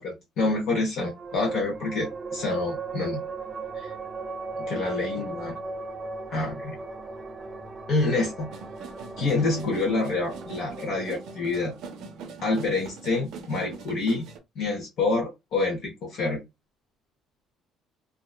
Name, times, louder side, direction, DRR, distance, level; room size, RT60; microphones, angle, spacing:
voice 1, 0.0-3.2 3.8-3.9 4.6-5.6 6.3-6.8 7.9-8.5 9.2-11.7 12.4-14.3 14.6-16.4, left 3 dB, 50° left, 0.7 m, -27 dB
sound 1, 1.0-13.8, right 3 dB, 20° right, 0.3 m, -38 dB
sound 2, 8.5-14.4, right 4 dB, 60° right, 0.6 m, -43 dB
2.5 x 2.1 x 2.3 m
cardioid pair, 170°, 0 cm